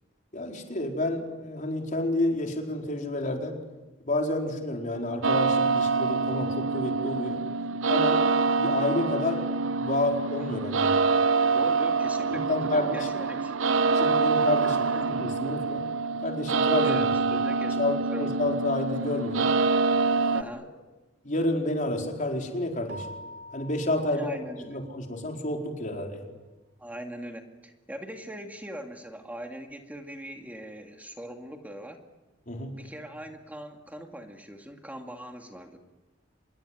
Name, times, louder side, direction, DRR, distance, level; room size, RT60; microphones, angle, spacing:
voice 1, 0.3-3.6 4.0-7.4 7.9-8.2 8.6-10.9 12.3-13.1 13.9-15.9 16.2-17.0 17.3-17.4 17.8-19.5 20.1-20.5 21.2-23.1 23.5-24.4 24.7-26.2 32.5-32.7, left 1 dB, 40° left, 2 dB, 4.6 m, -30 dB
sound 1, 5.2-20.4, right 4 dB, 85° right, 0.8 m, -25 dB
voice 2, 11.5-13.5 14.6-15.3 16.8-17.8 18.1-18.4 20.3-20.7 24.2-24.8 26.8-32.0 32.7-35.8, equal, 10° right, 4 dB, 2.2 m, -41 dB
Keyboard (musical), 22.9-25.3, equal, 65° right, 3.3 m, -45 dB
26.5 x 21.5 x 9.6 m, 1.1 s
head